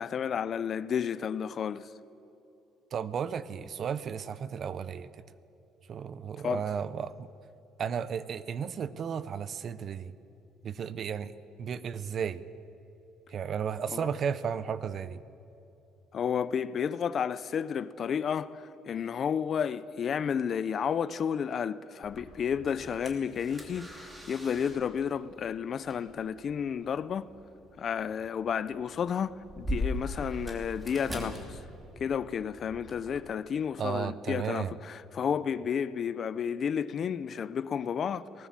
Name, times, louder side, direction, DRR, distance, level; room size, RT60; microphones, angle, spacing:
voice 1, 0.0-1.9 6.4-6.6 13.9-14.1 16.1-27.3 27.8-31.6 32.0-38.5, left 7 dB, 35° left, 0.5 m, -32 dB
voice 2, 2.9-5.2 5.9-7.3 7.8-10.1 10.6-11.3 11.6-12.4 13.3-15.2 33.8-34.8, right 7 dB, 35° right, 0.6 m, -34 dB
sound 1, 22.0-33.2, equal, 10° right, 2.8 m, -41 dB
20.5 x 19.0 x 7.5 m
cardioid pair, 165°, 0 cm